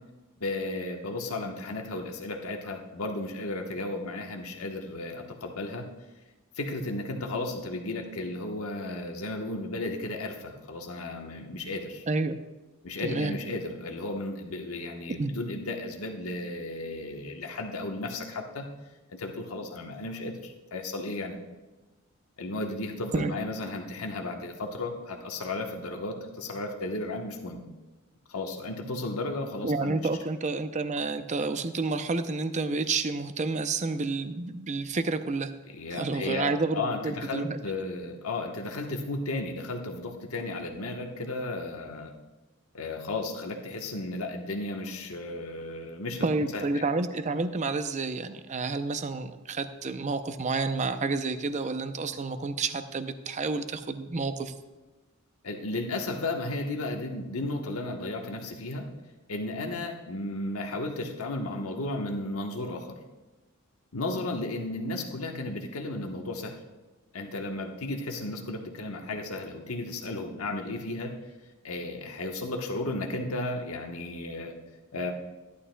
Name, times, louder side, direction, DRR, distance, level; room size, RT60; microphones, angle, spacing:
voice 1, 0.4-5.8 6.6-12.0 12.8-18.6 19.1-21.4 22.4-27.6 28.3-30.0 35.7-42.1 42.7-46.2 46.5-46.8 55.4-58.9 59.3-62.9 63.9-66.5 67.1-71.1 71.6-74.5 74.9-75.1, left 2 dB, 90° left, 2 dB, 1.1 m, -34 dB
voice 2, 12.1-12.4 13.0-13.4 15.2-15.3 23.1-23.3 29.6-35.5 35.9-37.6 46.2-54.5, right 3 dB, 35° right, 9 dB, 0.5 m, -30 dB
14.0 x 11.0 x 2.2 m, 1.2 s
head